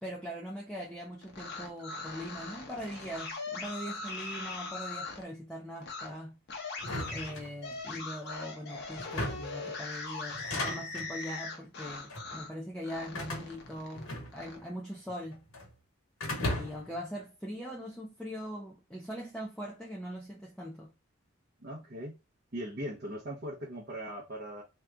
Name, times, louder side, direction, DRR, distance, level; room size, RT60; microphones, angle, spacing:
voice 1, 0.0-6.4 7.1-15.4 16.4-20.9, equal, 5° left, 0.5 m, -41 dB
sound 1, 1.2-5.2 5.8-6.1 6.5-12.5 12.8-14.6, left 3 dB, 45° left, 0.8 m, -41 dB
sound 2, 6.8-8.0 9.0-9.6 10.3-11.1 11.9-12.3 13.1-14.7 14.9-15.7 16.2-17.0, left 1 dB, 70° left, 1.3 m, -37 dB
voice 2, 21.6-22.2 22.5-24.6, equal, 45° right, 0.8 m, -39 dB
2.9 x 2.4 x 3.4 m
head